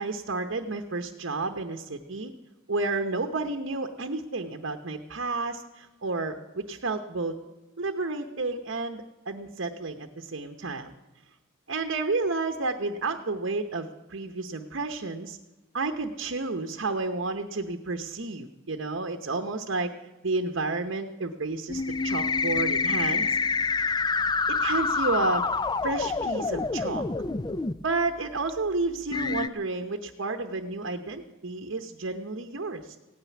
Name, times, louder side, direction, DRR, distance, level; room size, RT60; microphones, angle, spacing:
voice 1, 0.0-2.3 2.7-7.3 7.8-10.9 11.7-15.4 15.7-19.9 20.2-23.4 24.5-25.5 25.8-27.0 27.8-33.0, right 3 dB, 60° right, 6 dB, 0.9 m, -31 dB
sound 1, 21.7-27.7 28.5-28.6 29.1-29.5, left 4 dB, 20° left, 0.4 m, -27 dB
16.5 x 9.2 x 9.3 m, 1.1 s
head